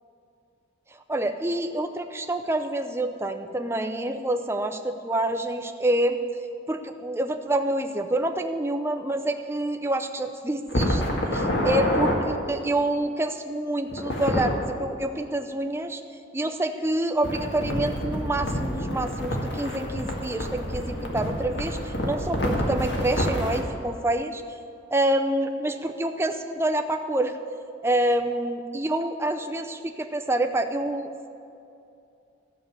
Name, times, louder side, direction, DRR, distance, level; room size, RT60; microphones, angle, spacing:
voice 1, 1.1-6.2 6.7-16.0 16.3-24.4 24.9-27.4 27.8-31.1, right 1 dB, 10° right, 6 dB, 0.5 m, -27 dB
sound 1, 10.7-12.2 13.9-14.5 17.2-23.6, equal, 55° left, 2.0 m, -27 dB
13.5 x 6.8 x 8.9 m, 2.6 s
head